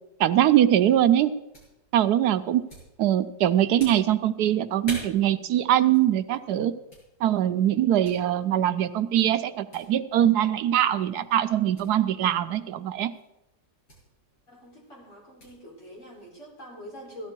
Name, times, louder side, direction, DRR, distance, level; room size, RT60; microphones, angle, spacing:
voice 1, 0.2-1.3 1.9-2.6 3.0-6.8 7.2-13.1, right 11 dB, 80° right, 11 dB, 1.2 m, -22 dB
sound 1, 0.7-16.3, equal, 75° left, 7.5 m, -49 dB
voice 2, 14.5-17.3, equal, 50° left, -3 dB, 4.5 m, -44 dB
16.5 x 13.0 x 4.4 m, 0.91 s
omnidirectional pair, 1.7 m